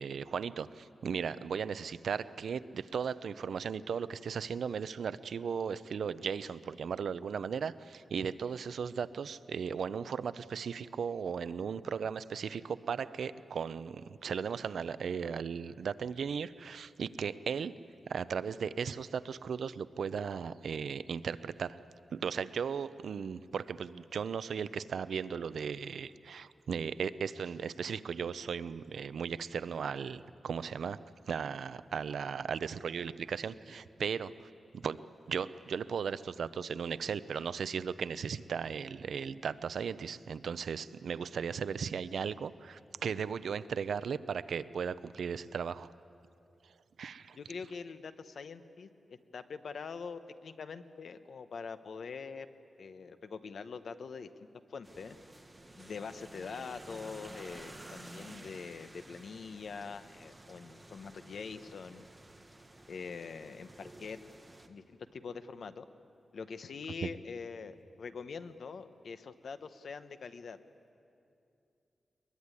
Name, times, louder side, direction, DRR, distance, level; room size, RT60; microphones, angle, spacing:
voice 1, 0.0-17.7 18.1-21.8 22.1-34.3 34.7-45.9 47.0-47.4 67.0-67.1, right 6 dB, 75° right, 15 dB, 0.6 m, -36 dB
voice 2, 47.3-52.5 52.8-54.3 54.7-55.2 55.8-62.1 62.9-64.2 64.7-65.9 66.3-70.6, left 5 dB, 65° left, 10 dB, 1.0 m, -44 dB
sound 1, 54.8-64.7, right 1 dB, 15° right, 1.3 m, -52 dB
22.0 x 21.5 x 9.7 m, 2.6 s
wide cardioid pair, 165°, 0 cm